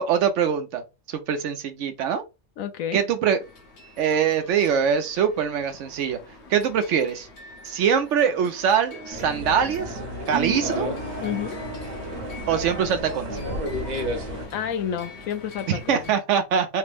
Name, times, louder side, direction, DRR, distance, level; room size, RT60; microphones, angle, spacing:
voice 1, 0.0-2.2 2.9-3.4 4.0-6.2 6.5-7.3 7.6-10.0 10.3-10.9 12.5-13.3 15.7-16.8, right 7 dB, 70° right, 0.9 m, -23 dB
voice 2, 2.6-3.0 11.2-11.6 14.5-16.1, left 8 dB, 80° left, 1.0 m, -30 dB
sound 1, 3.4-16.1, left 3 dB, 55° left, 1.1 m, -43 dB
sound 2, 9.1-14.5, right 1 dB, 40° right, 0.7 m, -31 dB
3.3 x 2.0 x 3.3 m
omnidirectional pair, 1.4 m